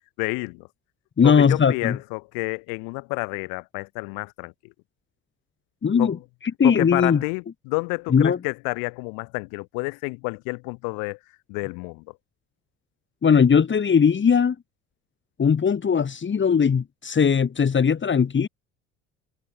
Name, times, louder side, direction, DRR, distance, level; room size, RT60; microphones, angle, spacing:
voice 1, 0.2-0.7 1.2-4.7 6.0-6.2 6.6-11.2 11.5-12.0, left 33 dB, 65° left, 4.0 m, -30 dB
voice 2, 1.2-2.0 5.8-6.2 6.6-7.2 8.1-8.4 13.2-14.6 15.4-18.5, left 6 dB, 30° left, 3.8 m, -19 dB
figure-of-eight pair, 60°, 37 cm